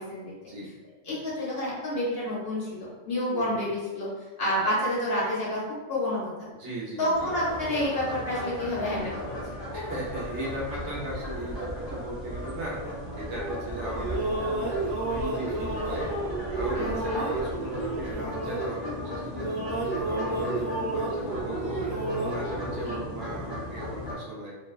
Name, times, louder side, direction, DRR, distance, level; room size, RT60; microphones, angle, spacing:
voice 1, 0.4-0.7 1.0-1.2 3.3-3.6 6.5-7.3 9.7-14.7 15.0-16.1 16.5-19.6 20.0-21.8 22.1-24.6, right 1 dB, 65° right, -4 dB, 0.9 m, -37 dB
voice 2, 1.1-4.1 4.4-5.6 5.9-6.2 7.0-9.4 16.8-17.3 22.8-23.0, left 1 dB, 60° left, -6 dB, 0.8 m, -29 dB
sound 1, 7.1-24.1, left 1 dB, 30° left, 0.5 m, -36 dB
sound 2, 13.7-19.1 19.3-22.3, right 2 dB, 85° right, 0.3 m, -32 dB
2.5 x 2.2 x 2.3 m, 1.2 s
omnidirectional pair, 1.3 m